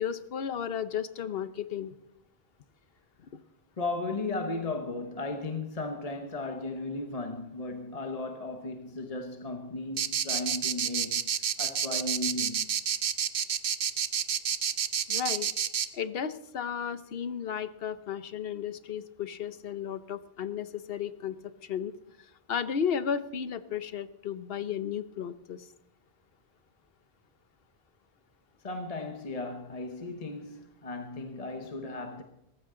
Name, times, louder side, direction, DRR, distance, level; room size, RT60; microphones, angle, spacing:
voice 1, 0.0-1.9 15.1-15.5 15.9-21.9 22.2-25.7, left 8 dB, 65° left, 1.0 m, -34 dB
voice 2, 3.8-11.3 11.6-12.8 28.6-32.2, left 2 dB, 40° left, 1.1 m, -35 dB
sound 1, 10.0-15.9, right 8 dB, 60° right, 0.9 m, -29 dB
18.5 x 15.0 x 3.8 m
omnidirectional pair, 1.1 m